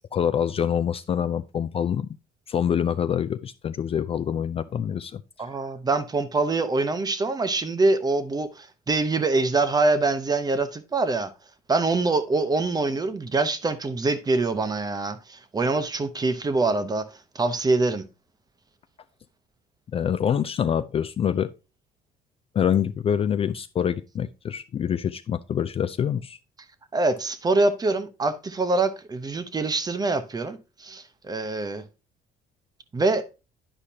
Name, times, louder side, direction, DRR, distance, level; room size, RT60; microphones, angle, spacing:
voice 1, 0.1-2.2 2.5-5.2 19.9-21.5 22.6-26.4, left 8 dB, 35° left, 0.3 m, -25 dB
voice 2, 5.4-11.3 11.7-17.1 17.3-18.0 26.9-31.8 32.9-33.2, right 3 dB, 25° right, 0.8 m, -24 dB
10.0 x 4.9 x 2.8 m
cardioid pair, 110°, 17 cm